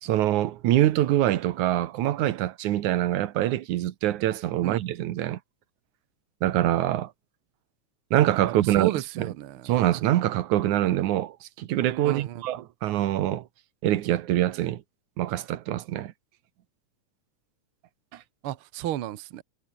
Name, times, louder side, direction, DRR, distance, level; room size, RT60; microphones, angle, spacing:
voice 1, 0.0-5.4 6.4-7.1 8.1-8.9 9.2-9.3 9.7-13.5 13.8-14.8 15.2-16.1 18.1-18.2, right 13 dB, 80° right, 2.5 m, -24 dB
voice 2, 8.7-9.7 12.0-12.4 18.4-19.4, right 12 dB, 60° right, 1.5 m, -33 dB
omnidirectional pair, 3.4 m